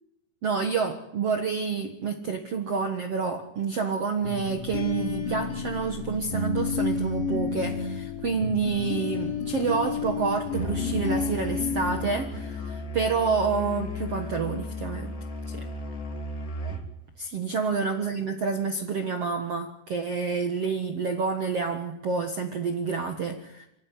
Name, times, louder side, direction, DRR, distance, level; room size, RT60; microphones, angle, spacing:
voice 1, 0.4-15.1 15.5-15.7 17.2-23.7, right 5 dB, 55° right, 6 dB, 1.7 m, -28 dB
sound 1, 4.2-13.0, left 4 dB, 75° left, 5.5 m, -31 dB
Musical instrument, 10.5-16.9, left 2 dB, 25° left, 2.1 m, -35 dB
26.0 x 16.0 x 9.7 m, 0.86 s
omnidirectional pair, 5.0 m